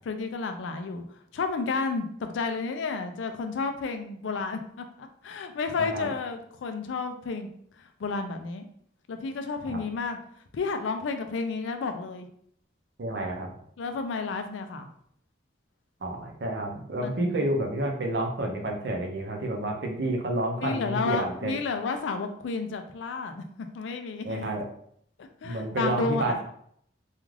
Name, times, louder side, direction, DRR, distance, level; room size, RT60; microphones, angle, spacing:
voice 1, 0.1-7.5 7.8-8.7 9.1-10.2 10.5-12.3 13.8-14.9 17.0-17.5 20.6-24.5 25.2-26.4, left 4 dB, 85° left, 6 dB, 0.4 m, -32 dB
voice 2, 13.0-13.5 16.0-21.5 24.2-24.6 25.4-26.4, right 1 dB, 60° right, 2 dB, 0.5 m, -29 dB
2.4 x 2.3 x 3.1 m, 0.66 s
head